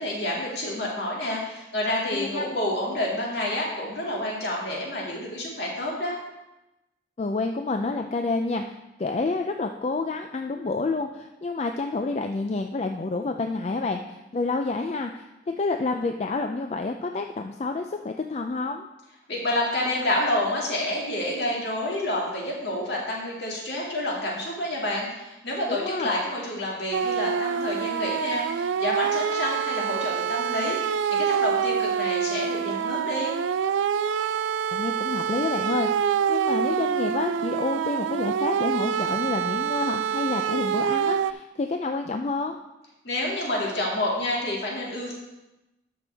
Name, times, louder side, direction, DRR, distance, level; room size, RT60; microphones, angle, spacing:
voice 1, 0.0-6.1 19.3-30.8 31.1-33.3 43.0-45.2, left 1 dB, 60° left, -3 dB, 2.3 m, -28 dB
voice 2, 2.1-2.4 7.2-8.6 9.0-18.9 25.7-26.1 34.7-42.6, left 3 dB, 35° left, 5 dB, 0.3 m, -29 dB
sound 1, 26.9-41.3, right 7 dB, 85° right, 0.3 m, -26 dB
12.0 x 6.0 x 3.4 m, 0.98 s
head